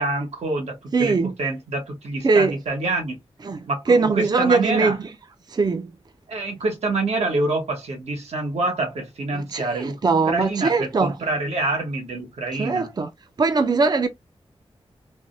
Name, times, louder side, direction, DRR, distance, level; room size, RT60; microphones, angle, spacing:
voice 1, 0.0-3.2 3.7-5.0 6.3-10.0 10.3-12.9, right 2 dB, 90° right, 1.1 m, -26 dB
voice 2, 0.9-1.3 2.2-2.5 3.5-5.0 5.5-5.9 9.3-11.1 12.6-13.1 13.4-14.1, right 4 dB, 40° right, 0.4 m, -21 dB
3.3 x 2.1 x 2.6 m
cardioid pair, 60°, 11 cm